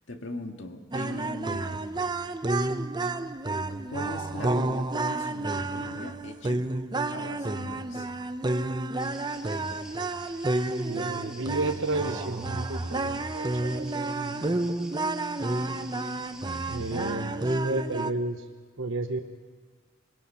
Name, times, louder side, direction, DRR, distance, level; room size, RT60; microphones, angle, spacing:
voice 1, 0.1-1.8 3.8-6.7 7.1-8.1, left 1 dB, 65° left, 4 dB, 2.0 m, -40 dB
sound 1, 0.9-18.1, right 2 dB, 20° right, 0.7 m, -30 dB
sound 2, 9.0-17.2, right 1 dB, 5° right, 1.7 m, -49 dB
voice 2, 10.9-14.9 16.7-18.5 18.8-19.2, right 2 dB, 70° right, 4 dB, 1.0 m, -32 dB
26.0 x 21.0 x 5.8 m, 1.5 s
head